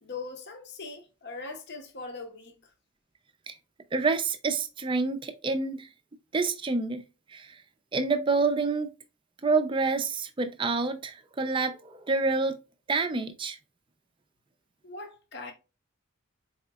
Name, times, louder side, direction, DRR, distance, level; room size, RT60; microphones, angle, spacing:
voice 1, 0.0-2.7 14.8-15.5, left 3 dB, 50° left, 0.7 m, -41 dB
voice 2, 3.9-5.9 6.3-7.0 7.3-7.6 7.9-8.9 9.4-12.6 12.9-13.6, right 4 dB, 25° right, 0.4 m, -27 dB
4.2 x 3.8 x 2.2 m
head